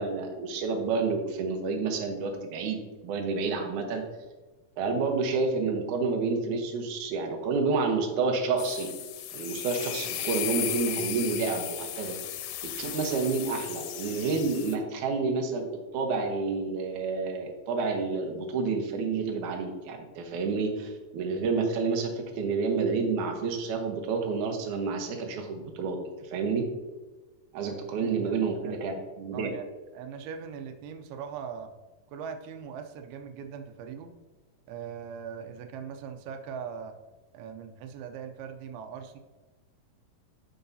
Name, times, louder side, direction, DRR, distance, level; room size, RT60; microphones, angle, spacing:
voice 1, 0.0-4.0 4.8-8.9 9.3-12.2 12.6-15.7 15.9-26.6 27.5-29.5, right 4 dB, 70° right, 2 dB, 2.2 m, -29 dB
sound 1, 8.6-14.8, left 11 dB, 90° left, 2.5 m, -35 dB
voice 2, 28.0-28.7 29.3-29.7 29.9-31.7 32.1-34.1 34.7-36.9 37.3-39.2, right 7 dB, 90° right, 6 dB, 2.5 m, -40 dB
12.0 x 4.7 x 2.7 m, 1.2 s
omnidirectional pair, 4.3 m